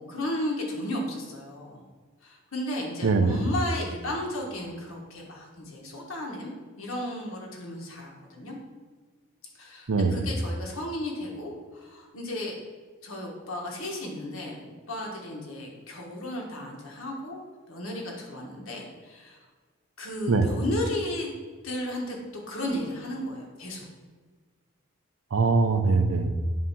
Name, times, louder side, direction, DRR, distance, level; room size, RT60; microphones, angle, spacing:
voice 1, 0.0-1.8 2.2-6.5 6.8-8.5 9.5-12.5 13.0-17.4 17.7-19.4 20.0-21.3 21.6-23.9, left 1 dB, 85° left, -1 dB, 1.5 m, -34 dB
voice 2, 3.0-3.4 9.9-10.2 20.3-20.5 25.3-26.3, right 4 dB, 90° right, 7 dB, 0.6 m, -22 dB
7.6 x 2.8 x 5.7 m, 1.4 s
head